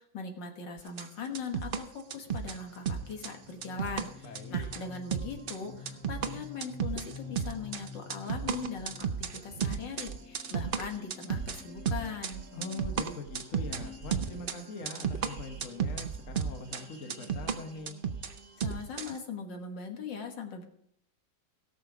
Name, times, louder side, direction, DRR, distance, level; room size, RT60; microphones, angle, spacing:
voice 1, 0.0-12.4 18.6-20.7, left 5 dB, 75° left, 4 dB, 2.1 m, -40 dB
sound 1, 0.9-1.8 2.1-2.6 2.9-4.1 4.4-4.8 5.1-5.6 5.9-16.8 17.1-17.6 17.9-19.2, right 7 dB, 75° right, 0.5 m, -33 dB
sound 2, 2.2-19.0, left 3 dB, 5° left, 1.6 m, -51 dB
voice 2, 4.2-4.7 12.5-18.0, left 3 dB, 50° left, 5 dB, 1.4 m, -42 dB
17.0 x 6.6 x 4.9 m, 0.71 s
omnidirectional pair, 2.0 m